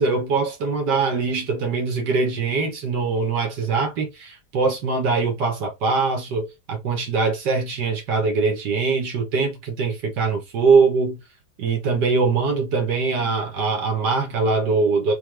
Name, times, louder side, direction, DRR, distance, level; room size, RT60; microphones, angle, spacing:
voice 1, 0.0-11.2 11.6-15.1, right 4 dB, 85° right, 1.8 m, -22 dB
5.5 x 2.9 x 3.4 m
omnidirectional pair, 1.8 m